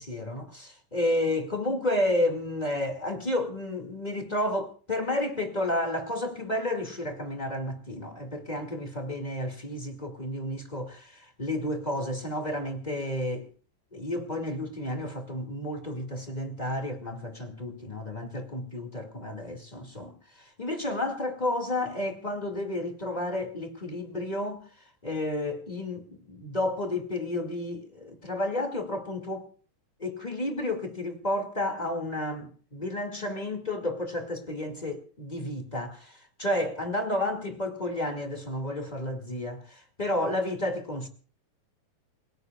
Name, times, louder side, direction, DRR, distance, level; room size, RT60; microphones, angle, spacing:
voice 1, 0.0-13.5 13.9-24.6 25.0-29.5 30.0-41.1, left 1 dB, 15° left, 1.7 m, -31 dB
29.0 x 17.5 x 2.4 m
omnidirectional pair, 3.7 m